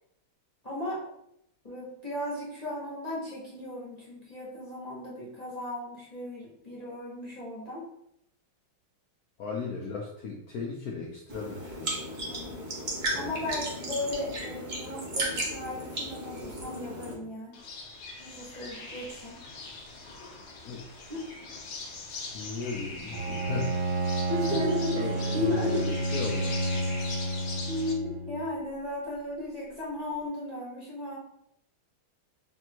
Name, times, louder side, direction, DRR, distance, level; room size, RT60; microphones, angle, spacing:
voice 1, 0.6-1.0 1.6-7.9 12.2-12.6 13.1-17.6 18.2-19.4 21.1-21.2 24.3-26.0 27.7-31.2, left 1 dB, 30° left, -7 dB, 0.7 m, -35 dB
voice 2, 9.4-11.9 13.1-13.4 20.6-20.8 22.3-23.9 24.2-24.6 25.0-27.0, left 4 dB, 85° left, -1 dB, 0.8 m, -37 dB
sound 1, 11.3-17.1, right 1 dB, 45° right, 0.9 m, -35 dB
sound 2, 17.5-27.9, left 3 dB, 70° left, 1.3 m, -41 dB
Bowed string instrument, 23.1-28.5, right 2 dB, 65° right, 1.3 m, -30 dB
3.4 x 2.6 x 4.4 m, 0.77 s
omnidirectional pair, 2.3 m